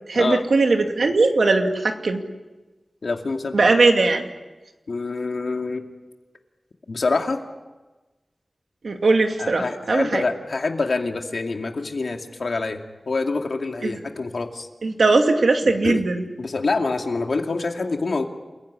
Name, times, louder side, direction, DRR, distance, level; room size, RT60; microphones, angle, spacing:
voice 1, 0.1-2.2 3.5-4.3 8.8-10.2 13.8-13.9 14.8-16.2, right 3 dB, 90° right, 4 dB, 2.4 m, -19 dB
voice 2, 3.0-3.7 4.9-5.9 6.9-7.4 9.4-14.7 15.6-16.0 16.4-18.3, left 3 dB, 80° left, 4 dB, 2.4 m, -26 dB
28.5 x 16.0 x 9.9 m, 1.2 s
wide cardioid pair, 60°, 0 cm